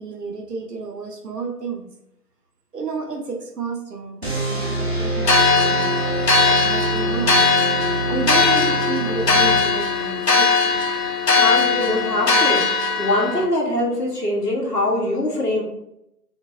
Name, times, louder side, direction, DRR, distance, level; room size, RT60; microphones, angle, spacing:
voice 1, 0.0-1.9 2.7-7.5 8.0-10.8, right 4 dB, 75° right, 3 dB, 0.8 m, -31 dB
sound 1, 4.2-10.1, right 2 dB, 40° right, 0.7 m, -25 dB
sound 2, 5.2-13.4, left 4 dB, 90° left, 0.9 m, -19 dB
voice 2, 11.3-12.6 13.0-15.6, left 1 dB, 75° left, -2 dB, 1.3 m, -22 dB
3.8 x 2.6 x 2.7 m, 0.82 s
figure-of-eight pair, 180°, 47 cm